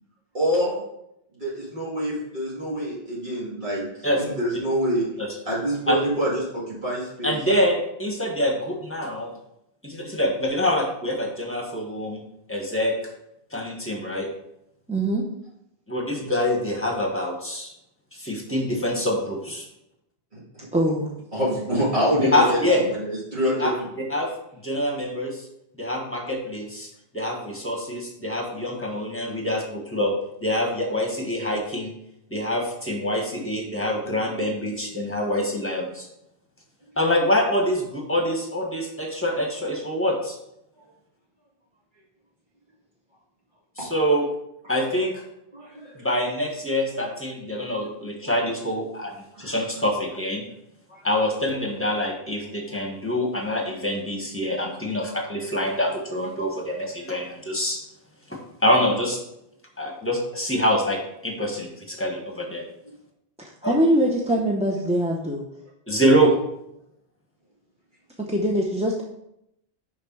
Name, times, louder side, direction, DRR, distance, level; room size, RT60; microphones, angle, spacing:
voice 1, 0.3-0.8 1.4-3.9 4.2-5.0 5.5-7.4 21.3-23.7 43.8-43.9 45.5-46.0 49.3-49.6 50.9-51.0 65.9-66.0, equal, 50° right, -8 dB, 2.5 m, -26 dB
voice 2, 7.2-9.3 9.8-12.2 12.5-12.9 13.5-14.3 15.9-17.7 18.1-19.7 22.3-22.8 23.6-23.7 24.1-24.3 24.6-25.5 25.8-26.9 27.1-30.1 30.4-31.9 32.3-36.1 37.0-40.4 43.8-44.3 44.7-45.2 46.0-50.4 51.0-57.8 58.3-59.2 59.8-62.6 63.6-63.7 65.9-66.3, equal, 10° left, 1 dB, 1.5 m, -25 dB
voice 3, 14.9-15.2 20.7-21.1 63.4-65.4 68.3-69.0, equal, 10° right, -1 dB, 0.6 m, -23 dB
6.6 x 5.4 x 4.6 m, 0.80 s
omnidirectional pair, 1.0 m